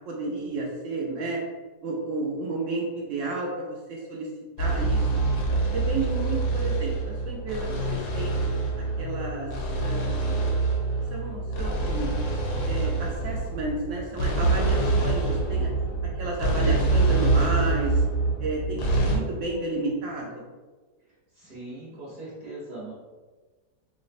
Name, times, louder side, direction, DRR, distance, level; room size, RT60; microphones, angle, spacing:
voice 1, 0.1-1.4 1.8-4.3 4.6-5.2 5.7-8.4 8.8-9.5 9.8-10.4 11.1-12.1 12.7-15.7 16.2-18.0 18.4-20.4, right 2 dB, 70° right, -2 dB, 0.7 m, -32 dB
sound 1, 4.6-19.2, right 3 dB, 75° left, 1.2 m, -25 dB
voice 2, 21.3-22.9, right 2 dB, 35° right, -7 dB, 1.0 m, -40 dB
4.8 x 2.0 x 2.4 m, 1.3 s
omnidirectional pair, 1.8 m